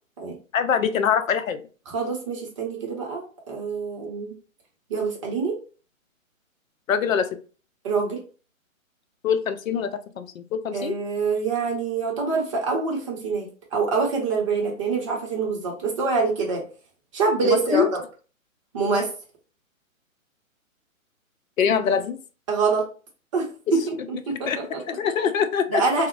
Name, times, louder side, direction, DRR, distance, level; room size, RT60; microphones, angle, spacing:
voice 1, 0.5-1.6 6.9-7.4 9.2-11.0 17.4-17.9 21.6-22.2 24.3-25.8, left 7 dB, 75° left, 10 dB, 0.5 m, -24 dB
voice 2, 1.9-4.3 4.9-5.6 7.8-8.2 10.7-16.6 17.1-18.0 18.7-19.1 22.5-22.9 23.3-24.8 25.7-26.1, right 4 dB, 25° right, -1 dB, 0.6 m, -25 dB
3.5 x 2.0 x 3.0 m, 0.37 s
hypercardioid pair, 140°, 41 cm